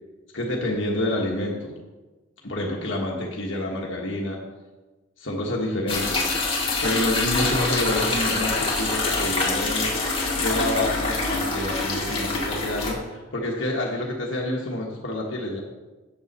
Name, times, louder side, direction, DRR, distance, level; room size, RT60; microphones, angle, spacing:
voice 1, 0.3-1.7 2.4-4.4 5.2-6.3 6.8-9.9 10.4-15.6, left 1 dB, 70° left, -2 dB, 1.5 m, -28 dB
sound 1, 5.9-12.9, left 3 dB, 30° left, 1.9 m, -25 dB
8.1 x 7.1 x 6.6 m, 1.2 s
head